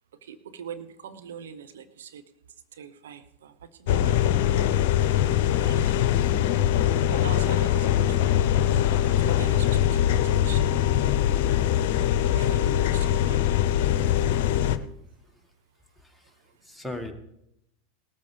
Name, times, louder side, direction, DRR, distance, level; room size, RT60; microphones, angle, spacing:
voice 1, 0.2-2.2 2.8-6.1 7.1-8.7 9.2-10.7 12.3-13.7, right 7 dB, 75° right, 10 dB, 1.0 m, -42 dB
sound 1, 3.9-14.8, left 11 dB, 60° left, 0.7 m, -22 dB
voice 2, 15.1-15.5 16.0-17.1, left 1 dB, ahead, 2 dB, 1.8 m, -40 dB
18.5 x 13.0 x 3.5 m, 0.80 s
hypercardioid pair, 90°, 0 cm